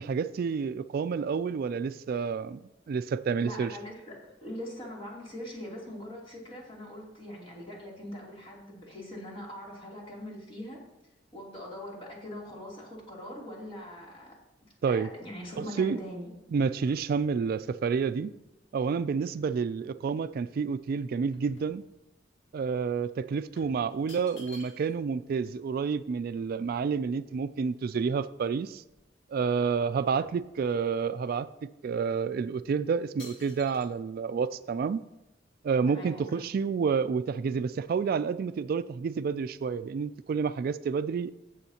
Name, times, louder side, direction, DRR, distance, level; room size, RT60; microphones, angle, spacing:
voice 1, 0.0-3.7 14.8-15.1 15.6-16.0 16.5-18.3 18.7-21.8 22.5-28.8 29.3-31.5 31.8-35.0 35.6-41.3, right 5 dB, 55° right, 0.3 m, -29 dB
voice 2, 3.4-10.8 11.3-14.3 14.9-16.6 35.9-36.5, left 1 dB, 30° left, 3.0 m, -42 dB
sound 1, 15.4-19.7 20.2-22.3 22.6-22.8 23.5-25.1 25.4-25.5 25.7-27.9 28.4-28.5 28.8-29.6 29.8-31.1 31.6-31.8 32.4-32.7 33.2-33.9, left 1 dB, 80° left, 2.0 m, -55 dB
16.0 x 7.0 x 2.9 m
head